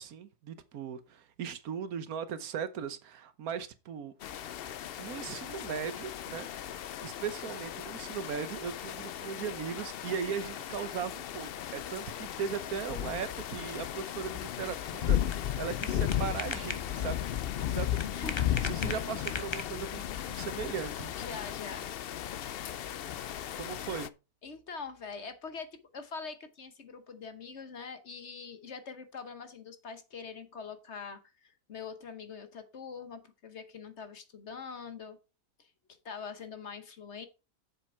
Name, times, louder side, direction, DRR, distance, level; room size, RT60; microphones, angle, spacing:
voice 1, 0.0-4.1 5.0-6.7 7.0-15.2 15.6-17.3 17.6-21.1 23.5-24.1, right 7 dB, 70° right, 1.3 m, -38 dB
sound 1, 4.2-24.1, left 11 dB, 80° left, 0.5 m, -35 dB
sound 2, 14.7-20.0, left 4 dB, 30° left, 0.5 m, -41 dB
voice 2, 18.1-18.5 21.2-21.9 24.4-35.2 35.6-35.7 36.0-37.3, left 5 dB, 50° left, 1.2 m, -43 dB
7.4 x 7.0 x 4.4 m
omnidirectional pair, 1.6 m